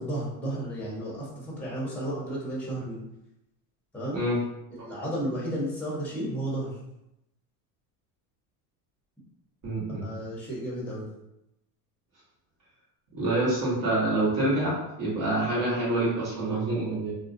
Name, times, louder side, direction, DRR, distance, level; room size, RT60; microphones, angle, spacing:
voice 1, 0.0-3.0 3.9-4.2 4.7-6.7 10.0-11.1, right 1 dB, 5° left, -5 dB, 0.8 m, -33 dB
voice 2, 9.6-10.1 13.1-17.1, right 2 dB, 45° right, -6 dB, 1.1 m, -26 dB
2.4 x 2.1 x 2.6 m, 0.86 s
supercardioid pair, 105°, 47 cm